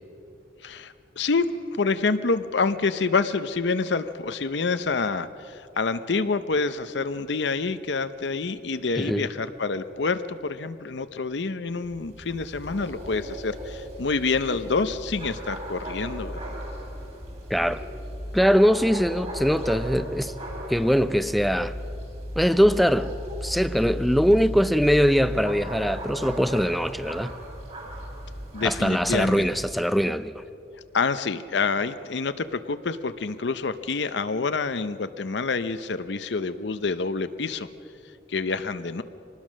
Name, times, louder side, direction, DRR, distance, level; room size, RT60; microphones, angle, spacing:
voice 1, 0.6-1.5 1.8-16.6 28.5-29.5 30.9-37.7 38.3-39.0, left 4 dB, 70° left, 0.7 m, -27 dB
voice 2, 8.9-9.3 17.5-17.8 18.3-20.3 20.7-21.7 22.4-23.1 23.4-27.3 28.6-30.4, equal, ahead, 0.5 m, -22 dB
sound 1, 11.7-29.8, equal, 35° right, 3.2 m, -36 dB
24.5 x 19.5 x 6.3 m
head